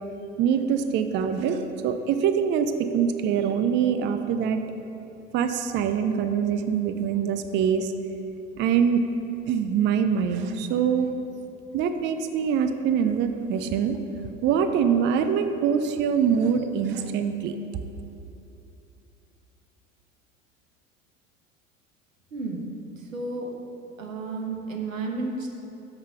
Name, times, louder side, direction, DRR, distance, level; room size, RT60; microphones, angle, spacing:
voice 1, 0.4-4.6 5.3-7.9 8.6-9.1 9.5-11.1 11.7-14.0 14.4-17.6, right 7 dB, 30° right, 8 dB, 0.4 m, -24 dB
voice 2, 22.3-22.7 23.0-23.5 24.0-25.5, right 3 dB, 85° right, 1 dB, 1.0 m, -32 dB
6.8 x 5.4 x 5.7 m, 2.8 s
figure-of-eight pair, 75°, 39 cm